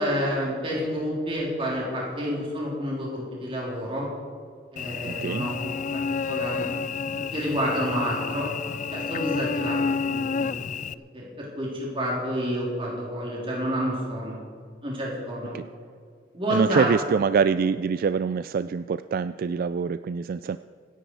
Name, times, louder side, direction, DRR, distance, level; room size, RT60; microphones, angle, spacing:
voice 1, 0.0-4.1 4.7-8.5 8.9-10.9 11.1-14.4 14.8-15.5 16.3-16.9, equal, 30° right, -4 dB, 3.7 m, -29 dB
Cricket / Buzz, 4.8-10.9, left 5 dB, 40° left, 0.4 m, -30 dB
voice 2, 5.0-5.5 15.5-15.6 16.5-20.6, right 6 dB, 50° right, 13 dB, 0.3 m, -25 dB
25.0 x 10.0 x 4.8 m, 2.1 s
head